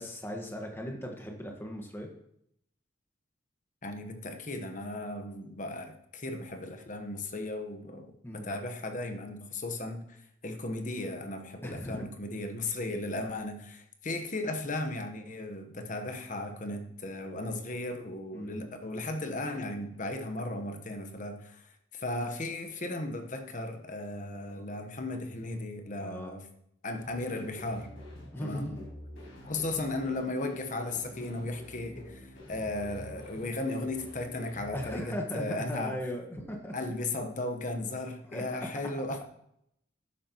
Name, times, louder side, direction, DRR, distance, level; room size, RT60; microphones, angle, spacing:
voice 1, 0.0-2.1 8.2-8.5 11.6-12.0 18.3-18.6 26.0-26.3 28.3-28.9 34.7-36.8 38.3-38.9, equal, 10° left, 1 dB, 1.5 m, -38 dB
voice 2, 3.8-26.5 26.8-27.9 28.4-28.7 29.4-36.0 36.7-39.2, left 2 dB, 40° left, 6 dB, 1.1 m, -36 dB
sound 1, 27.0-34.9, left 1 dB, 80° left, 4.9 m, -47 dB
12.5 x 9.7 x 3.0 m, 0.74 s
head